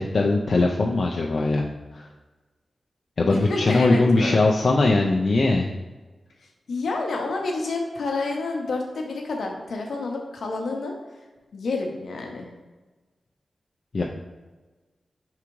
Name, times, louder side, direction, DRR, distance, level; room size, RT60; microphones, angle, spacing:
voice 1, 0.0-1.7 1.9-2.1 3.2-5.7 13.9-14.0, left 2 dB, 65° left, -1 dB, 0.4 m, -20 dB
voice 2, 3.3-4.4 6.7-10.9 11.5-12.5, left 3 dB, 80° left, 1 dB, 0.8 m, -29 dB
4.8 x 3.6 x 3.0 m, 1.2 s
cardioid pair, 45°, 0 cm